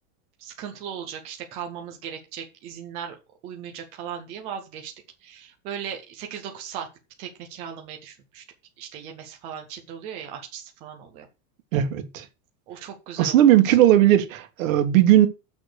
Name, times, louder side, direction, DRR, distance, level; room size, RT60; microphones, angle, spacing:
voice 1, 0.4-3.2 3.4-4.9 5.2-6.9 7.2-8.4 8.8-11.3 12.7-13.8, right 8 dB, 15° right, 0.4 m, -37 dB
voice 2, 11.7-12.2 13.2-15.3, right 12 dB, 55° right, 1.7 m, -17 dB
6.7 x 6.2 x 6.5 m
supercardioid pair, 175°, 46 cm